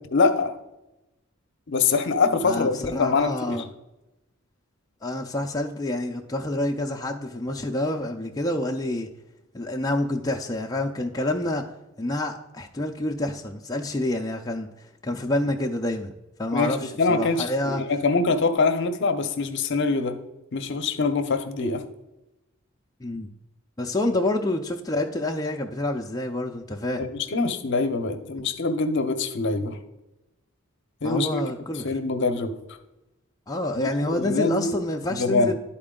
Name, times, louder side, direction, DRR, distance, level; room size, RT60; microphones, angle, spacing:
voice 1, 0.1-0.5 1.7-3.6 16.5-20.1 20.5-21.8 24.1-24.2 27.0-29.8 31.0-31.4 31.8-32.5 33.8-34.7 35.2-35.5, left 4 dB, 55° left, 8 dB, 0.7 m, -24 dB
voice 2, 2.4-3.6 5.0-9.1 9.5-11.6 12.0-16.1 16.4-17.8 23.0-23.3 23.8-27.1 31.0-31.9 33.5-35.5, left 1 dB, 15° left, 1 dB, 0.4 m, -28 dB
11.5 x 4.3 x 3.7 m, 0.97 s
head